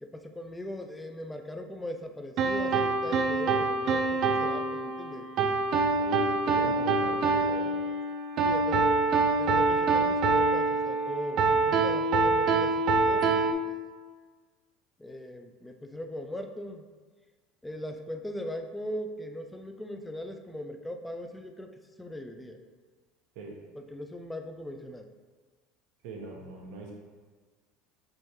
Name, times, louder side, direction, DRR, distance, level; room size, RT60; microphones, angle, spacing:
voice 1, 0.0-5.3 8.4-8.9 9.1-13.8 15.0-16.9 17.6-21.7 22.0-22.6 23.7-25.1, left 1 dB, 10° left, 5 dB, 0.4 m, -39 dB
sound 1, 2.4-13.5, right 3 dB, 50° right, 0.4 m, -25 dB
voice 2, 6.0-7.8 23.3-23.6 26.0-26.9, right 3 dB, 70° right, 0 dB, 1.0 m, -40 dB
5.4 x 3.1 x 3.1 m, 1.4 s
supercardioid pair, 115°, 0 cm